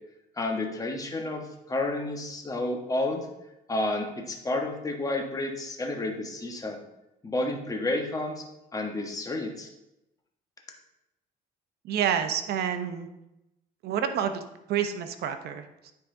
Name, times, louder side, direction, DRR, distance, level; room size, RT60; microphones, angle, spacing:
voice 1, 0.4-3.3 3.7-6.8 7.2-8.5 8.7-9.7, left 2 dB, 20° left, 2 dB, 1.4 m, -30 dB
voice 2, 11.8-13.1 13.8-14.4 14.7-15.9, right 8 dB, 70° right, 8 dB, 0.9 m, -28 dB
9.5 x 4.8 x 3.9 m, 0.89 s
cardioid pair, 110°, 17 cm